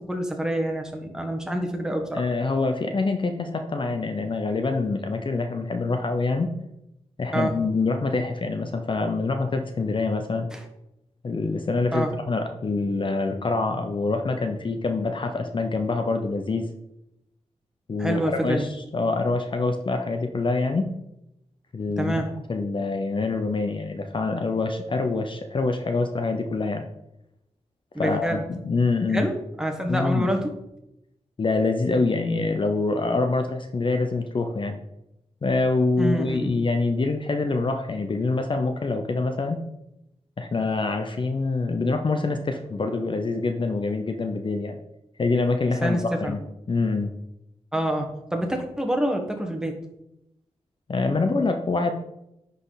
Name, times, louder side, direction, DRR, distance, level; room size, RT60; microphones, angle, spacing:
voice 1, 0.0-2.2 7.3-7.6 10.5-10.6 11.9-12.1 18.0-18.7 22.0-22.3 27.9-28.4 29.1-30.5 36.0-36.6 45.8-46.4 47.7-49.8, right 1 dB, 5° right, 3 dB, 1.4 m, -27 dB
voice 2, 2.1-6.5 7.2-10.5 11.2-16.7 17.9-20.9 21.7-22.2 22.5-26.8 28.0-29.3 29.9-30.3 31.4-34.8 35.4-39.6 40.4-44.8 45.2-46.4 46.7-47.1 50.9-51.9, left 3 dB, 45° left, 6 dB, 0.7 m, -25 dB
9.8 x 4.2 x 4.0 m, 0.86 s
cardioid pair, 70°, 12 cm